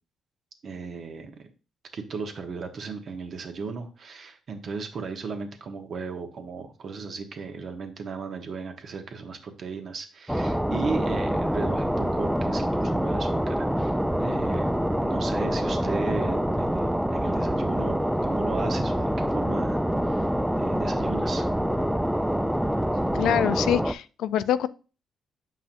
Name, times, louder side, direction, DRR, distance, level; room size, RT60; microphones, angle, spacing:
voice 1, 0.6-1.5 1.9-14.7 15.0-20.3 20.6-21.5, right 4 dB, 55° right, 5 dB, 1.2 m, -36 dB
sound 1, 10.3-23.9, equal, ahead, 0.4 m, -26 dB
voice 2, 23.1-24.7, left 10 dB, 80° left, 14 dB, 0.4 m, -25 dB
7.5 x 5.5 x 2.7 m, 0.33 s
cardioid pair, 90°, 0 cm